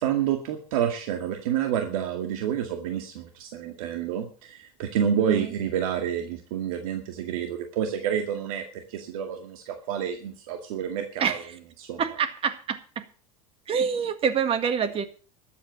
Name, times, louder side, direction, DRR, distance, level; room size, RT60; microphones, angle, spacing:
voice 1, 0.0-11.4 11.8-12.0, right 9 dB, 80° right, 6 dB, 2.0 m, -29 dB
voice 2, 5.1-5.5 11.2-11.6 12.0-13.0 13.7-15.0, right 7 dB, 35° right, 11 dB, 1.8 m, -27 dB
13.0 x 8.5 x 7.2 m, 0.39 s
supercardioid pair, 120°, 18 cm